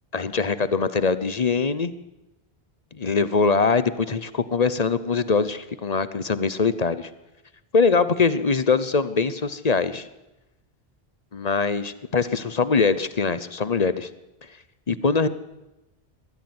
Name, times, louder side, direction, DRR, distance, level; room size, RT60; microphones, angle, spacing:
voice 1, 0.1-1.9 3.0-7.1 7.7-10.1 11.3-14.1 14.9-15.3, left 4 dB, 40° left, 14 dB, 0.9 m, -22 dB
20.5 x 14.0 x 9.6 m, 0.98 s
omnidirectional pair, 1.1 m